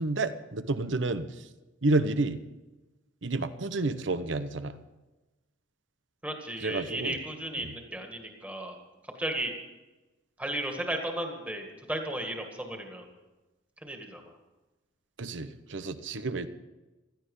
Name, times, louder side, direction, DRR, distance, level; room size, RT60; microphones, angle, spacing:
voice 1, 0.0-1.5 1.8-2.4 3.2-4.8 6.6-7.2 7.6-7.7 15.2-16.5, right 2 dB, 75° right, 12 dB, 0.9 m, -30 dB
voice 2, 6.2-8.8 9.0-9.5 10.4-13.1 13.8-14.4, right 1 dB, 10° right, 3 dB, 2.0 m, -35 dB
16.5 x 13.0 x 5.5 m, 1.1 s
head